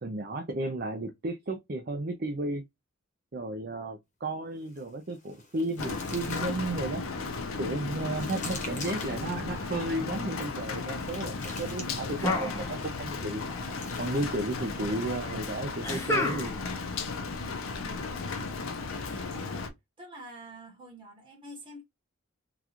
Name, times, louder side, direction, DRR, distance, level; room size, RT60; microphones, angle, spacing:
voice 1, 0.0-2.7 3.3-7.0 7.6-13.4 14.0-16.5, right 2 dB, 45° right, 0.5 m, -33 dB
sound 1, 4.6-6.9 7.4-9.4 10.3-12.4 13.4-15.0, left 3 dB, 35° left, 0.9 m, -46 dB
Rain, 5.8-19.7, left 4 dB, 80° left, 0.6 m, -35 dB
sound 2, 12.2-13.2 13.4-14.2 15.8-16.8, left 1 dB, 15° left, 0.6 m, -31 dB
voice 2, 14.9-15.4 19.3-21.8, equal, 25° right, 1.4 m, -46 dB
3.8 x 2.4 x 2.9 m
head